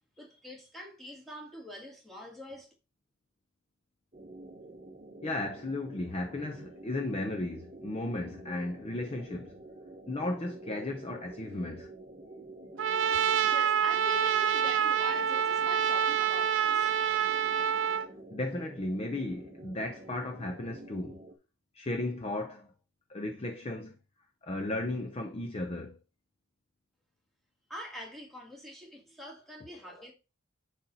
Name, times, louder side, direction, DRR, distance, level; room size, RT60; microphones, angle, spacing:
voice 1, 0.2-2.7 13.4-17.3 27.7-30.1, left 1 dB, ahead, 1.9 m, -45 dB
sound 1, 4.1-21.4, right 2 dB, 30° right, 0.8 m, -49 dB
voice 2, 5.2-9.6 10.1-11.9 13.1-13.2 18.3-21.2 21.7-22.7 23.1-23.9 24.4-26.0 29.9-30.0, left 2 dB, 30° left, 0.6 m, -35 dB
Trumpet, 12.8-18.1, right 8 dB, 60° right, 0.4 m, -27 dB
7.0 x 4.1 x 4.0 m
head